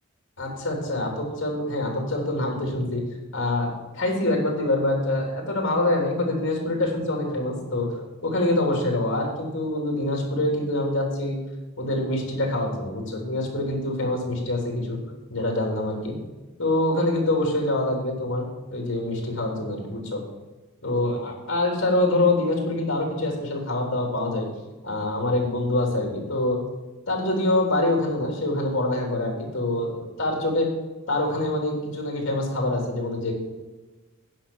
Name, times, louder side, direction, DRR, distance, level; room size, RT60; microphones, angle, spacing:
voice 1, 0.4-3.0 3.3-7.9 8.2-11.4 11.8-15.0 15.3-16.1 16.6-20.2 20.8-24.5 24.8-26.6 27.1-30.7 31.1-33.3, left 1 dB, 60° left, 0 dB, 3.4 m, -25 dB
10.0 x 5.9 x 7.3 m, 1.2 s
head